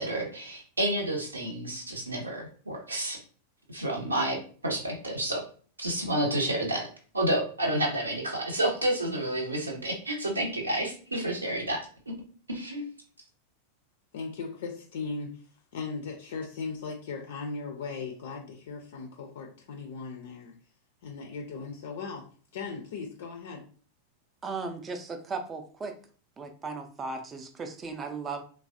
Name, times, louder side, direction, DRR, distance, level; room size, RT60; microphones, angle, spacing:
voice 1, 0.0-3.2 3.7-5.4 5.8-6.9 7.1-11.8 12.5-12.9, right 1 dB, 80° right, 1 dB, 0.7 m, -30 dB
voice 2, 14.1-15.4 15.7-20.5 21.0-22.2 22.5-23.7, left 4 dB, 60° left, 2 dB, 0.4 m, -38 dB
voice 3, 24.4-26.0 26.4-28.4, right 4 dB, 20° right, 6 dB, 0.4 m, -36 dB
3.2 x 2.1 x 2.4 m, 0.42 s
figure-of-eight pair, 90°, 0 cm